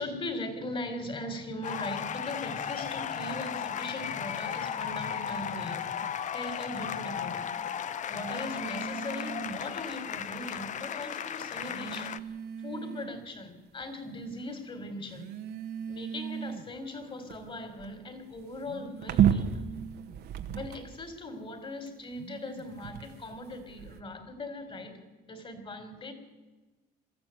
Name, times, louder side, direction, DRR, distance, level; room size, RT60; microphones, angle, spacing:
voice 1, 0.0-5.9 6.3-7.5 8.1-12.2 12.6-15.3 15.9-19.6 20.5-26.1, left 2 dB, 30° left, 9 dB, 4.1 m, -39 dB
sound 1, 1.6-12.2, left 8 dB, 45° left, 0.9 m, -35 dB
sound 2, 6.0-6.3 8.0-9.8 10.8-10.9 11.6-13.3 13.8-14.3 15.1-21.1 21.9-24.0, right 9 dB, 75° right, 1.9 m, -34 dB
22.5 x 14.0 x 9.3 m, 1.2 s
cardioid pair, 110°, 17 cm